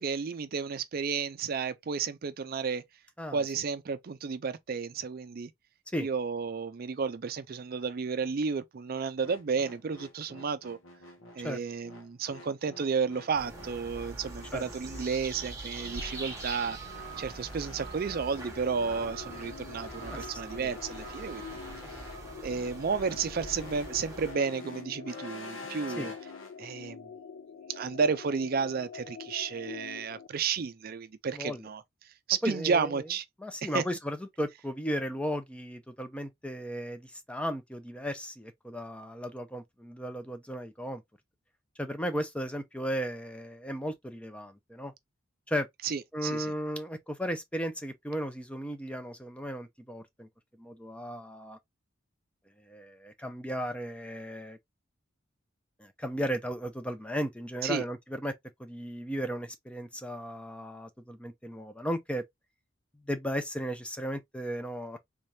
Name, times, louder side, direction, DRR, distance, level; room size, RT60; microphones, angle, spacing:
voice 1, 0.0-2.8 3.3-5.5 6.0-10.8 11.3-16.8 17.2-21.6 22.4-26.1 26.6-27.1 27.7-31.8 32.3-33.2 33.6-33.8 45.8-46.5 57.6-57.8, right 5 dB, 45° right, 0.4 m, -32 dB
sound 1, 9.2-26.5, left 2 dB, 80° left, 1.1 m, -48 dB
sound 2, 13.3-24.3, right 3 dB, 15° right, 1.1 m, -43 dB
sound 3, 18.4-30.3, left 6 dB, 65° left, 0.4 m, -46 dB
voice 2, 20.1-20.7 26.0-26.1 31.3-31.6 32.4-32.9 33.4-41.0 41.8-44.9 45.5-45.7 46.1-50.3 50.6-51.6 52.7-54.6 55.8-58.3 58.6-62.2 63.1-65.0, equal, 5° left, 0.5 m, -35 dB
3.5 x 3.3 x 2.7 m
head